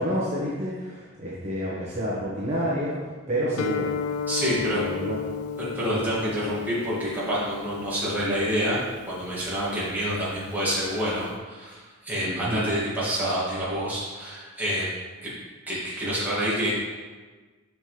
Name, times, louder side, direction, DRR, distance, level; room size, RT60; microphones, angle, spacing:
voice 1, 0.0-2.9 3.3-3.9 4.4-5.2 12.2-12.6, equal, 30° right, -9 dB, 1.4 m, -29 dB
Guitar, 3.6-11.3, left 6 dB, 85° left, 0.4 m, -35 dB
voice 2, 4.3-4.8 5.6-8.8 9.1-14.9 15.2-15.3 15.7-16.7, equal, 10° right, -9 dB, 2.3 m, -27 dB
7.5 x 6.1 x 3.4 m, 1.4 s
head